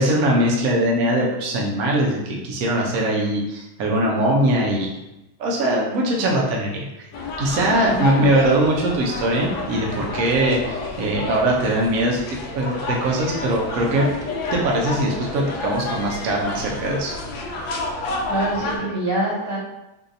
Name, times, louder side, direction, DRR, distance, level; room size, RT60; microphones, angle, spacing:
voice 1, 0.0-4.9 5.4-7.1 7.4-14.1 14.5-17.1, right 1 dB, 65° right, -2 dB, 0.9 m, -21 dB
sound 1, 7.1-18.8, left 3 dB, 70° left, 1.2 m, -29 dB
voice 2, 7.9-8.4 18.3-19.6, right 1 dB, 45° right, -11 dB, 2.2 m, -25 dB
4.0 x 2.8 x 2.6 m, 0.94 s
omnidirectional pair, 2.4 m